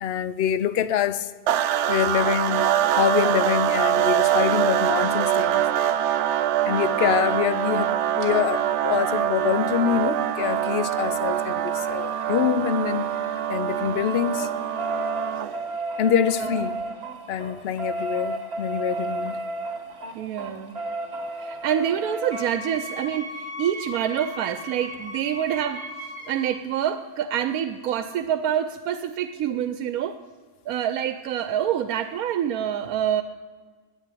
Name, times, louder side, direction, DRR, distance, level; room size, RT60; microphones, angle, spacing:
voice 1, 0.0-1.3 1.9-2.7 3.0-5.7 6.6-13.1 13.5-14.5 16.0-16.8 17.3-19.4, left 9 dB, 60° left, 0.7 m, -25 dB
sound 1, 1.5-15.7, right 11 dB, 65° right, 0.8 m, -24 dB
sound 2, 8.2-8.3 10.0-13.5 13.8-22.5 24.2-24.3 24.5-24.6 24.9-25.0, right 2 dB, 45° right, 1.5 m, -33 dB
voice 2, 20.1-20.8 21.4-25.8 26.3-30.2 30.7-33.2, right 10 dB, 85° right, 1.1 m, -26 dB
Wind instrument woodwind instrument, 22.3-26.6, equal, 10° left, 2.0 m, -37 dB
10.5 x 9.6 x 9.2 m
omnidirectional pair, 1.5 m